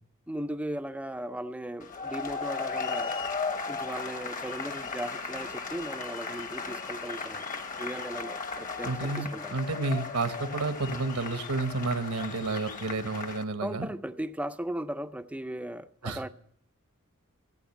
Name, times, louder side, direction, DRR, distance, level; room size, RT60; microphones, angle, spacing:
voice 1, 0.3-3.1 3.7-7.5 7.8-9.6 13.6-16.3, right 1 dB, 5° right, 0.5 m, -37 dB
sound 1, 1.8-13.4, left 4 dB, 35° left, 1.1 m, -36 dB
voice 2, 8.8-13.9 16.0-16.3, right 3 dB, 80° right, 1.1 m, -31 dB
15.0 x 8.8 x 7.1 m
head